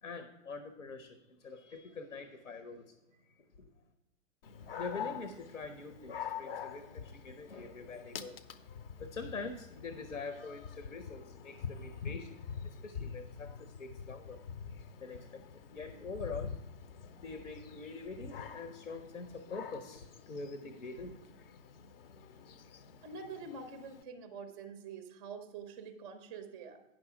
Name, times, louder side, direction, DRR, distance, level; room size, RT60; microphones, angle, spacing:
voice 1, 0.0-3.0 3.2-3.7 4.6-8.4 9.0-14.4 15.0-16.5 17.2-21.2, left 3 dB, 85° left, 9 dB, 0.9 m, -45 dB
Dog, 4.4-24.0, left 6 dB, 50° left, 0.6 m, -46 dB
voice 2, 23.0-26.8, right 4 dB, 10° right, 10 dB, 0.4 m, -46 dB
9.3 x 6.2 x 4.8 m, 0.94 s
figure-of-eight pair, 115°, 39 cm